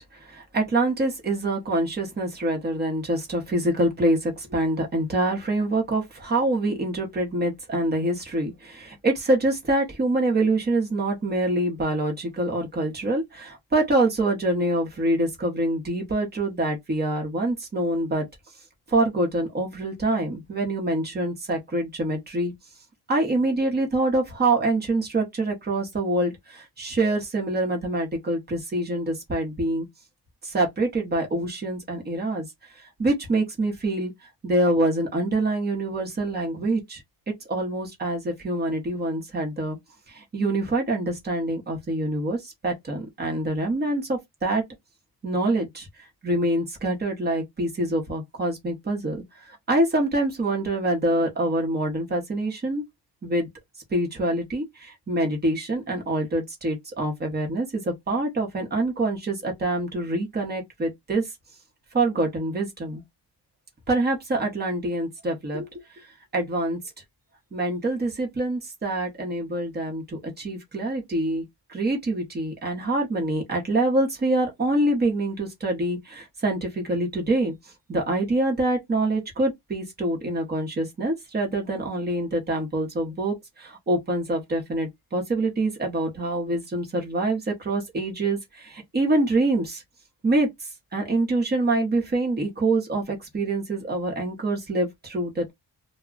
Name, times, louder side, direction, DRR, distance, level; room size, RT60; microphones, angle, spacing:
voice 1, 0.1-18.3 18.9-22.5 23.1-29.9 30.4-32.5 33.0-34.1 34.4-37.0 37.5-39.8 40.1-44.6 45.2-49.2 49.7-52.8 53.2-53.5 53.9-61.2 61.9-63.0 63.9-66.1 66.3-66.8 67.5-77.5 77.9-89.8 90.2-95.5, right 2 dB, 25° right, 0.9 m, -25 dB
2.2 x 2.1 x 3.7 m
wide cardioid pair, 180°, 40 cm